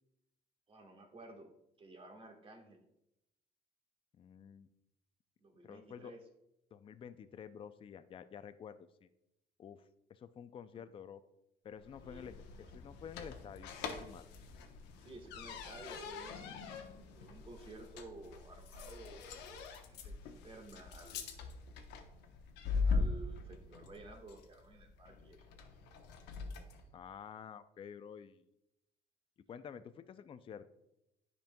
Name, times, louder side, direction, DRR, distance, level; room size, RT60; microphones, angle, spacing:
voice 1, 0.7-1.5 1.8-2.8 5.4-6.2 12.0-12.3 12.6-12.7 15.0-16.8 17.2-21.3 22.8-25.5 25.8-26.0, right 2 dB, 30° right, 3 dB, 1.4 m, -54 dB
voice 2, 4.2-4.7 5.6-6.1 6.7-9.1 9.6-11.2 11.6-14.3 26.9-28.4 29.5-30.7, left 8 dB, 30° left, 11 dB, 0.4 m, -50 dB
sound 1, 11.8-26.8, left 4 dB, 90° left, 0.8 m, -42 dB
10.0 x 5.3 x 2.3 m, 0.86 s
cardioid pair, 110°, 17 cm